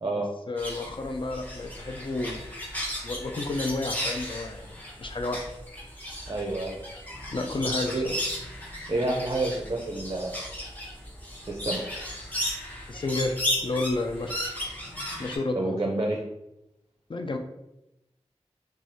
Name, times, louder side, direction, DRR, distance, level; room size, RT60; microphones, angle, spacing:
voice 1, 0.1-2.5 3.0-5.5 7.3-8.2 12.9-14.4 15.2-15.8 17.1-17.4, left 2 dB, 45° left, 4 dB, 0.3 m, -31 dB
sound 1, 0.6-15.4, left 1 dB, 15° left, 0.9 m, -35 dB
voice 2, 6.3-6.8 7.9-8.1 8.9-10.4 11.5-11.8 15.5-16.2, right 2 dB, 35° right, -1 dB, 0.5 m, -28 dB
3.1 x 2.4 x 2.6 m, 0.88 s
wide cardioid pair, 45°, 12 cm